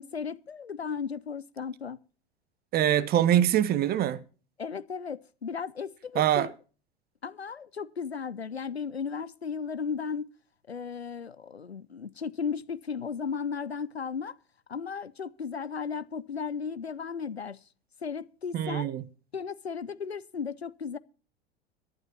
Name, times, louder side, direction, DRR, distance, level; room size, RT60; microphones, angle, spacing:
voice 1, 0.0-2.0 4.6-6.5 7.2-10.3 10.7-14.4 14.7-17.6 18.0-18.9 19.3-21.0, left 6 dB, 90° left, 0.7 m, -35 dB
voice 2, 2.7-4.2 6.1-6.5 18.5-19.0, right 11 dB, 30° right, 1.0 m, -24 dB
22.5 x 11.5 x 2.8 m
figure-of-eight pair, 85°, 31 cm